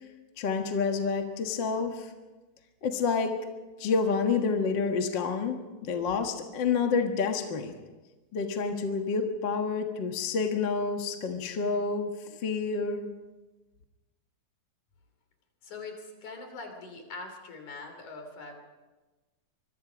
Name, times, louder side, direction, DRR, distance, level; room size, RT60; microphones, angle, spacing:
voice 1, 0.4-2.1 2.8-3.4 3.8-7.7 8.3-13.1, left 5 dB, 45° left, 4 dB, 1.7 m, -29 dB
voice 2, 15.6-18.6, left 3 dB, 65° left, 5 dB, 4.4 m, -42 dB
25.5 x 22.5 x 5.1 m, 1.2 s
omnidirectional pair, 3.7 m